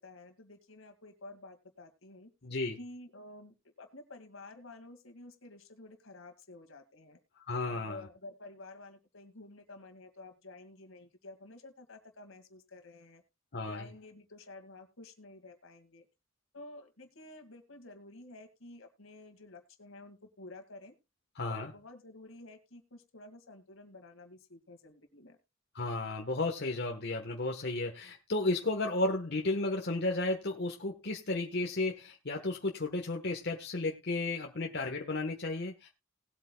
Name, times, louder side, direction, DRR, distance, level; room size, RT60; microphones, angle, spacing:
voice 1, 0.0-2.3 2.8-7.2 7.7-13.2 13.7-16.1 16.5-20.9 21.5-25.4, left 2 dB, 75° left, 2.2 m, -51 dB
voice 2, 2.4-2.8 7.4-8.0 13.5-13.8 21.3-21.7 25.7-35.9, left 2 dB, 55° left, 1.3 m, -33 dB
19.5 x 8.4 x 2.3 m
head